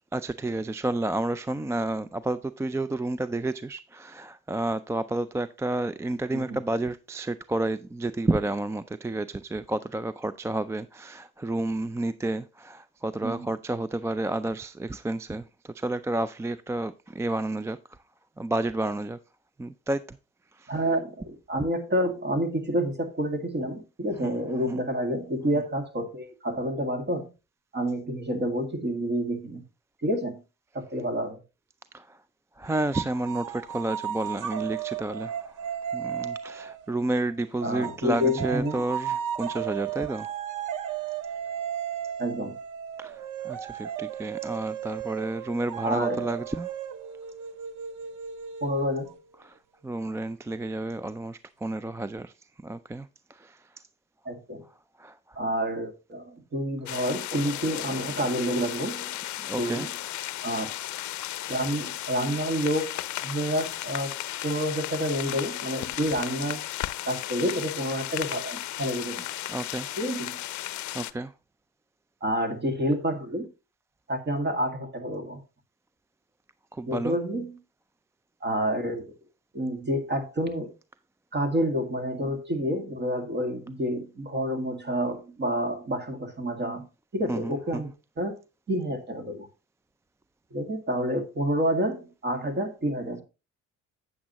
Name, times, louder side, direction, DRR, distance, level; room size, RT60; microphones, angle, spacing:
voice 1, 0.1-17.8 18.4-19.2 19.6-20.2 20.6-20.7 24.2-24.4 24.7-24.8 25.5-25.6 31.9-32.2 32.6-35.6 35.9-40.3 43.0-46.7 49.5-49.6 49.8-52.3 52.6-53.6 55.0-55.2 59.4-60.3 69.5-69.9 70.9-71.3 76.7-77.2 87.3-87.9, right 2 dB, 10° right, 0.3 m, -31 dB
voice 2, 20.7-27.3 27.7-29.6 30.0-30.4 30.7-31.4 37.6-38.8 42.2-42.6 45.8-46.3 48.6-49.1 54.3-54.6 55.4-59.2 59.6-59.9 60.4-60.7 61.5-64.1 64.4-66.6 67.0-69.2 70.0-70.4 72.2-73.5 74.1-75.4 76.9-77.6 78.4-79.0 79.5-80.7 81.3-86.9 87.1-87.9 88.2-88.4 88.7-89.5 90.5-93.2, equal, 35° right, 2.0 m, -29 dB
sound 1, 32.9-37.3 37.8-49.2, right 9 dB, 85° right, 0.7 m, -35 dB
sound 2, 56.9-71.1, left 14 dB, 70° left, 0.6 m, -35 dB
8.6 x 8.3 x 2.9 m
cardioid pair, 90°, 30 cm